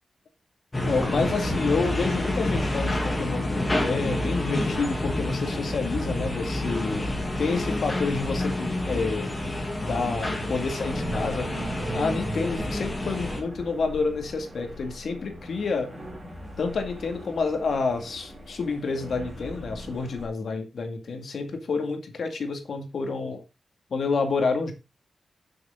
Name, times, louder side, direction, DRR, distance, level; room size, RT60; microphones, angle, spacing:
sound 1, 0.7-13.4, left 1 dB, 20° left, 2.6 m, -28 dB
voice 1, 0.8-7.0 7.4-9.3 9.8-11.6 11.9-15.9 16.6-23.4 23.9-24.7, left 4 dB, 70° left, 5 dB, 2.1 m, -29 dB
sound 2, 7.0-20.3, left 1 dB, 20° right, 4.8 m, -41 dB
10.5 x 6.9 x 3.7 m, 0.26 s
wide cardioid pair, 150°, 0 cm